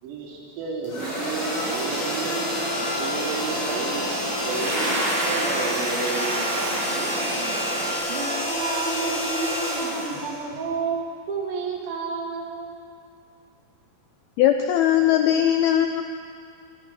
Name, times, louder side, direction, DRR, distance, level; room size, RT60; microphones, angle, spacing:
voice 1, 0.0-2.4 3.0-4.1 4.4-4.9 5.3-6.5, right 4 dB, 75° right, -3 dB, 4.7 m, -32 dB
sound 1, 0.8-10.8, equal, 40° left, 6.3 m, -28 dB
sound 2, 1.0-7.9, right 1 dB, 35° right, 1.8 m, -31 dB
voice 2, 6.7-7.6 8.1-12.7, right 4 dB, 90° right, 0 dB, 4.3 m, -31 dB
voice 3, 14.4-16.0, left 11 dB, 85° left, 6 dB, 2.1 m, -19 dB
23.5 x 11.5 x 5.3 m, 2.4 s
omnidirectional pair, 5.0 m